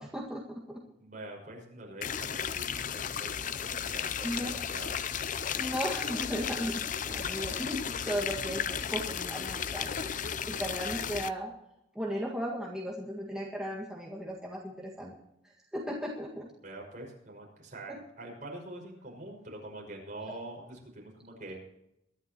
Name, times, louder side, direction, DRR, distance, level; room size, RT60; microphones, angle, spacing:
voice 1, 0.0-0.8 4.2-4.5 5.5-11.5 11.9-15.1 15.4-16.5 17.9-18.0, equal, 5° right, -3 dB, 1.8 m, -36 dB
voice 2, 1.0-5.0 16.6-21.5, right 1 dB, 45° right, 0 dB, 5.7 m, -45 dB
sound 1, 2.0-11.3, left 8 dB, 45° left, 0.5 m, -34 dB
sound 2, 4.4-10.4, left 3 dB, 80° left, 5.2 m, -55 dB
23.0 x 11.5 x 3.0 m, 0.82 s
head